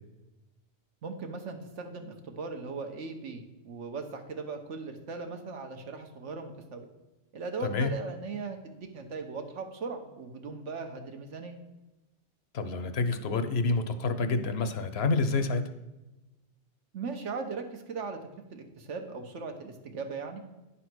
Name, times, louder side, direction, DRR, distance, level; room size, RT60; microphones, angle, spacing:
voice 1, 1.0-6.9 7.3-11.6 16.9-18.2 18.5-20.4, right 4 dB, 80° right, 5 dB, 1.3 m, -38 dB
voice 2, 12.5-15.7, left 3 dB, 65° left, 10 dB, 0.9 m, -28 dB
10.0 x 4.1 x 6.0 m, 1.1 s
omnidirectional pair, 1.2 m